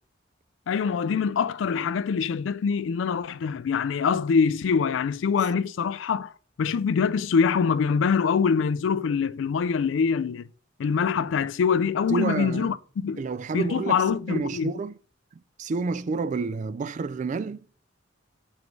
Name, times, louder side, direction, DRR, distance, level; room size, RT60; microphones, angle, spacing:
voice 1, 0.7-6.3 6.6-10.5 10.8-13.3 13.5-14.7, left 6 dB, 75° left, 0.4 m, -24 dB
voice 2, 12.1-12.7 13.2-14.0 14.3-14.9 15.6-17.6, right 4 dB, 40° right, 0.3 m, -29 dB
7.3 x 4.6 x 3.2 m
head